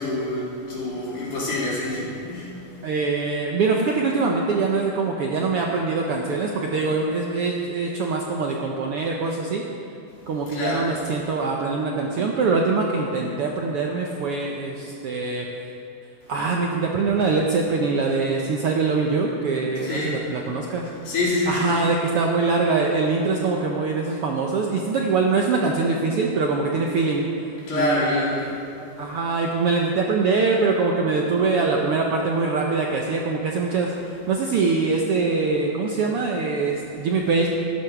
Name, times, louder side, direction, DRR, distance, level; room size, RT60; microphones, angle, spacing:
voice 1, 0.0-2.5 10.5-10.8 19.8-20.2 21.0-21.9 27.7-28.3, left 2 dB, 75° left, -7 dB, 5.0 m, -26 dB
voice 2, 2.8-9.6 10.3-15.5 16.3-20.9 21.5-27.3 27.7-28.6 29.0-37.5, right 4 dB, 70° right, 0 dB, 1.4 m, -23 dB
13.0 x 11.0 x 6.0 m, 2.9 s
omnidirectional pair, 3.6 m